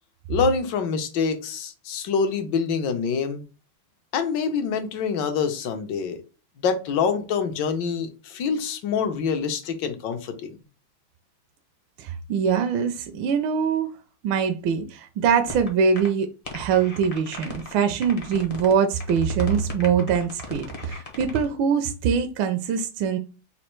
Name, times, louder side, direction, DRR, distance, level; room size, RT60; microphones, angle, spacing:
voice 1, 0.3-3.4 4.1-6.2 6.6-10.6, left 5 dB, 70° left, 7 dB, 1.3 m, -26 dB
voice 2, 12.0-13.9 14.2-23.2, right 6 dB, 75° right, 6 dB, 1.2 m, -23 dB
sound 1, 15.5-15.7 16.0-16.1 16.4-17.7 18.0-18.7 19.0-21.4, left 3 dB, 50° left, 0.4 m, -37 dB
4.3 x 2.3 x 4.3 m, 0.34 s
omnidirectional pair, 2.3 m